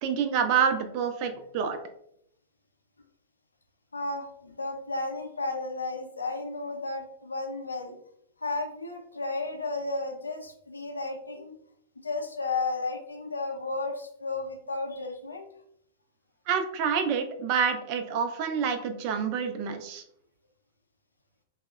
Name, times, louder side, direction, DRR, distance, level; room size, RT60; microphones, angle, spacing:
voice 1, 0.0-1.8 16.5-20.0, right 7 dB, 45° right, 7 dB, 0.4 m, -27 dB
voice 2, 3.9-8.0 8.4-11.5 12.0-15.5, left 3 dB, 85° left, 3 dB, 0.4 m, -33 dB
3.3 x 2.0 x 2.3 m, 0.73 s
figure-of-eight pair, 100°, 0 cm